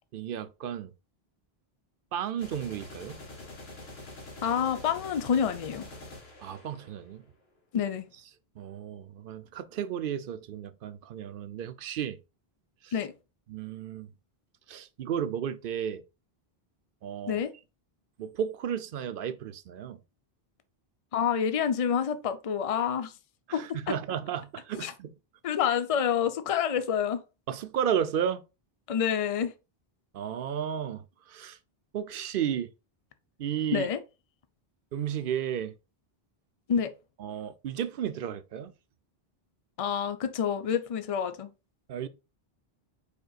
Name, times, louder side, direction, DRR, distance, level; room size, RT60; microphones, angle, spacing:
voice 1, 0.1-0.9 2.1-3.2 6.4-7.2 8.6-12.2 12.8-12.9 13.5-14.1 14.7-16.0 17.0-17.4 18.2-20.0 23.5-25.1 27.5-28.4 30.1-31.6 31.9-32.7 33.4-33.9 34.9-35.7 37.2-38.7 41.9-42.1, right 9 dB, 65° right, 0.7 m, -33 dB
sound 1, 2.4-7.2, left 2 dB, 80° left, 1.5 m, -45 dB
voice 2, 4.4-5.9 7.7-8.1 12.9-13.1 17.3-17.5 21.1-23.1 23.5-24.0 24.7-24.9 25.4-27.2 28.9-29.5 33.7-34.0 36.7-36.9 39.8-41.5, left 8 dB, 40° left, 0.6 m, -28 dB
5.2 x 4.4 x 2.3 m
omnidirectional pair, 1.0 m